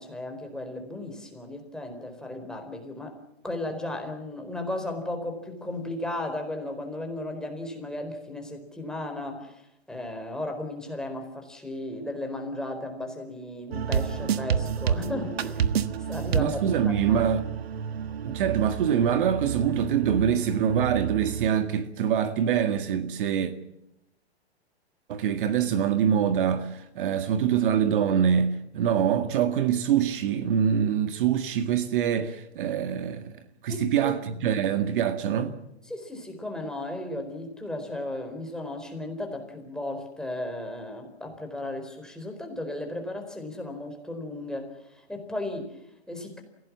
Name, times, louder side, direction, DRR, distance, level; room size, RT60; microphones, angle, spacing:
voice 1, 0.0-3.2 3.4-9.6 9.9-17.3 33.7-34.1 35.9-46.4, left 1 dB, ahead, 4.5 m, -35 dB
sound 1, 13.7-21.5, right 7 dB, 70° right, 1.6 m, -30 dB
voice 2, 16.3-17.4 18.2-23.5 25.1-33.4 33.6-35.6, right 8 dB, 50° right, 1.9 m, -24 dB
27.5 x 17.0 x 7.4 m
hypercardioid pair, 125°, 32 cm